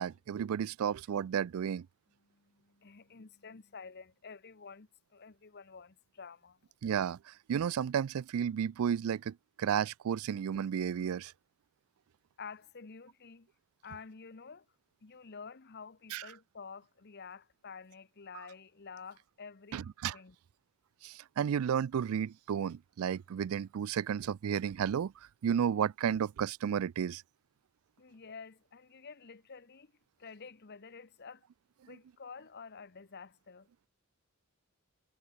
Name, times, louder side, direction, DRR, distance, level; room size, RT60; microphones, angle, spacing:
voice 1, 0.0-1.9 6.8-7.2 7.5-11.3 16.1-16.3 19.7-20.2 21.0-25.1 25.4-27.2, right 8 dB, 70° right, 0.3 m, -32 dB
voice 2, 2.2-6.6 12.4-13.5 13.8-14.7 15.0-19.9 20.1-20.4 28.0-29.9 30.2-31.4 31.8-33.7, left 5 dB, 50° left, 0.9 m, -50 dB
head